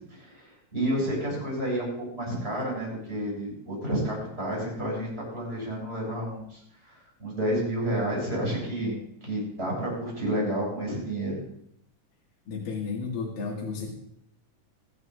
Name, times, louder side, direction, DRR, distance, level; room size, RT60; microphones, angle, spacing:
voice 1, 0.1-6.6 6.8-6.9 7.2-9.0 9.2-11.4, right 1 dB, 15° right, -3 dB, 7.0 m, -30 dB
voice 2, 12.5-13.9, left 5 dB, 85° left, -2 dB, 3.8 m, -32 dB
21.5 x 11.0 x 2.6 m, 0.70 s
omnidirectional pair, 3.9 m